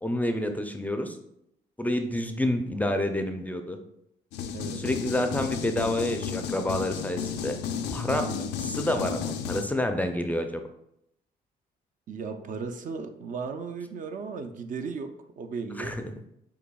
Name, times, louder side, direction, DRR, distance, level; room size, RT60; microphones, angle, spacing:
voice 1, 0.0-1.2 1.8-3.8 4.8-7.6 7.9-8.3 8.6-10.6 15.8-16.0, left 1 dB, 10° left, 6 dB, 0.4 m, -28 dB
sound 1, 4.3-9.6, left 7 dB, 85° left, 0.4 m, -33 dB
voice 2, 4.5-4.9 8.2-8.5 12.1-16.0, right 5 dB, 50° right, 6 dB, 0.4 m, -36 dB
6.8 x 2.7 x 2.3 m, 0.78 s
cardioid pair, 80°, 17 cm